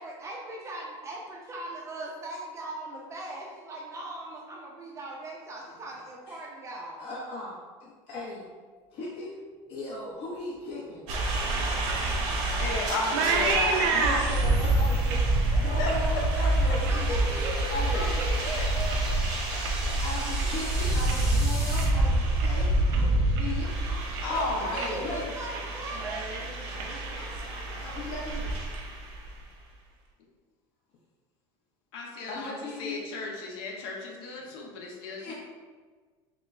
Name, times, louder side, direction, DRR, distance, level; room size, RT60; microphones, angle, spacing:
voice 1, 0.0-1.2 1.5-7.0 16.9-19.0 24.5-26.2, right 2 dB, 20° right, -1 dB, 0.4 m, -39 dB
voice 2, 7.0-8.5 8.9-9.3 9.7-11.1 11.6-12.0 13.9-15.2 15.6-17.3 17.7-18.1 20.0-23.7 24.3-25.4 27.8-28.6 32.3-33.2 34.4-34.5 35.2-35.3, left 2 dB, 50° left, -4 dB, 0.6 m, -37 dB
sound 1, 10.2-21.8, equal, 5° right, 0.7 m, -43 dB
sound 2, 11.1-29.4, right 2 dB, 50° right, 0.7 m, -27 dB
sound 3, 11.1-17.8 18.1-18.6 18.9-21.3 21.6-22.1 22.4-22.5 22.9-23.7 24.0-24.4 24.8-25.0 25.3-25.7 25.9-27.8, right 5 dB, 85° right, 0.5 m, -33 dB
voice 3, 12.6-13.8 15.5-16.2 17.9-18.2 18.5-18.6 24.2-25.2 27.8-27.9 31.9-32.5 32.8-35.3, left 3 dB, 85° left, -1 dB, 0.8 m, -34 dB
5.8 x 2.0 x 2.5 m, 1.5 s
cardioid pair, 160°, 13 cm